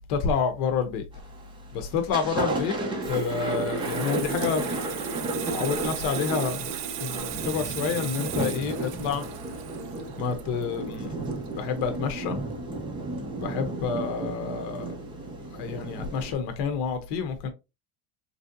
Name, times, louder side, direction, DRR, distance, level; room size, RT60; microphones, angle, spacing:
voice 1, 0.1-1.0 1.7-2.7 3.1-4.7 5.3-6.7 7.0-9.2 10.2-11.2 11.5-12.4 13.4-14.9 15.5-17.5, left 6 dB, 60° left, 0.8 m, -28 dB
Thunder, 1.1-1.5 1.9-16.3, right 2 dB, 10° right, 0.4 m, -33 dB
Water tap faucet / Sink (filling or washing), 2.6-12.0 12.2-12.5, right 13 dB, 65° right, 0.5 m, -38 dB
3.2 x 2.7 x 2.5 m
supercardioid pair, 135°, 47 cm